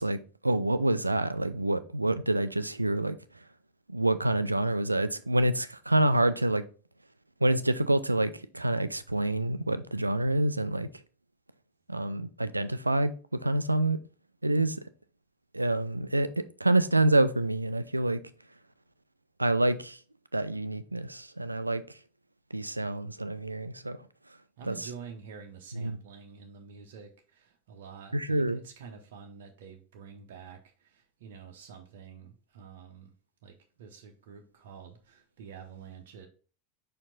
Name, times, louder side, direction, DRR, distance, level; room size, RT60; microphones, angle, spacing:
voice 1, 0.0-3.2 3.9-6.6 7.4-10.9 11.9-13.1 13.4-14.0 14.4-14.8 15.5-18.2 19.4-20.0 20.3-21.8 22.5-24.0 24.7-24.8 25.7-26.0 28.1-28.6, right 1 dB, 85° right, 0.4 m, -27 dB
voice 2, 24.6-33.1 33.4-36.3, right 6 dB, 60° right, 0.9 m, -48 dB
5.5 x 4.5 x 3.9 m
figure-of-eight pair, 85°, 0 cm